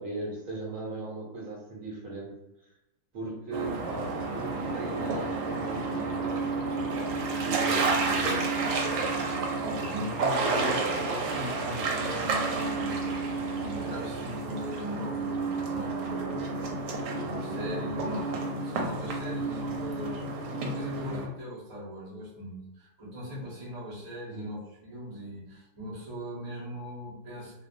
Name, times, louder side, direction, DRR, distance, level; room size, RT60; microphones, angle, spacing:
voice 1, 0.0-2.3 3.1-7.2 7.4-8.5 24.3-24.5, right 2 dB, 60° right, -4 dB, 1.1 m, -38 dB
sound 1, 3.5-21.3, right 3 dB, 85° right, 1.2 m, -30 dB
voice 2, 9.6-27.7, equal, 35° right, -7 dB, 0.6 m, -40 dB
2.6 x 2.2 x 2.5 m, 0.94 s
omnidirectional pair, 1.7 m